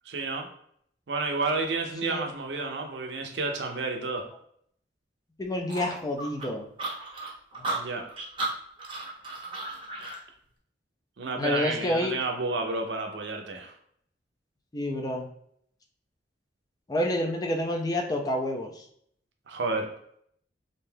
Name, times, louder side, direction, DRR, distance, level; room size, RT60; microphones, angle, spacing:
voice 1, 0.1-0.5 1.1-4.3 7.7-8.0 11.2-13.7 19.5-19.9, right 3 dB, 70° right, 3 dB, 0.5 m, -31 dB
voice 2, 5.4-6.6 7.6-7.7 11.4-12.2 14.7-15.3 16.9-18.8, left 1 dB, 20° left, 2 dB, 0.4 m, -28 dB
sound 1, 5.7-10.2, right 2 dB, 30° right, 0.6 m, -34 dB
2.6 x 2.3 x 3.2 m, 0.67 s
head